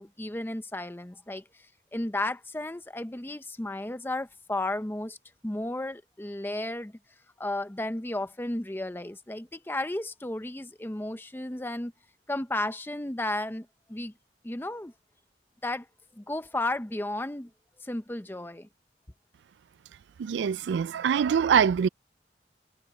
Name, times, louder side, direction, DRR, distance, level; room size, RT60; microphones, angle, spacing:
voice 1, 0.0-1.6 1.9-5.2 5.4-6.9 7.4-11.9 12.3-14.1 14.4-14.9 15.6-15.9 16.2-17.5 17.8-18.7, left 1 dB, 10° left, 0.6 m, -33 dB
voice 2, 20.2-21.9, right 7 dB, 85° right, 0.3 m, -24 dB
head